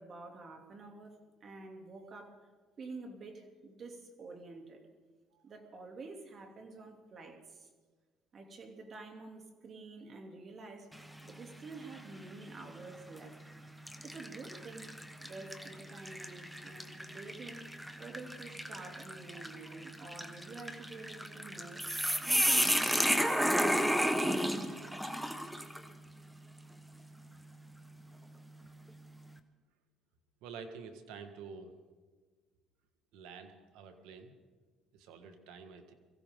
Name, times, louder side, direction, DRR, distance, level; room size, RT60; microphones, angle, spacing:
voice 1, 0.0-2.4 2.8-4.8 5.4-7.7 8.3-10.9 11.2-13.3 14.0-14.9 15.2-21.8 22.2-24.5, right 3 dB, 45° right, 3 dB, 2.8 m, -49 dB
sound 1, 10.9-11.4 11.9-12.1 13.0-13.3 13.9-25.9, equal, 5° right, 1.2 m, -33 dB
voice 2, 30.4-31.7 33.1-34.3 34.9-35.9, right 5 dB, 80° right, 7 dB, 1.6 m, -49 dB
23.0 x 15.5 x 3.8 m, 1.4 s
supercardioid pair, 80°, 0 cm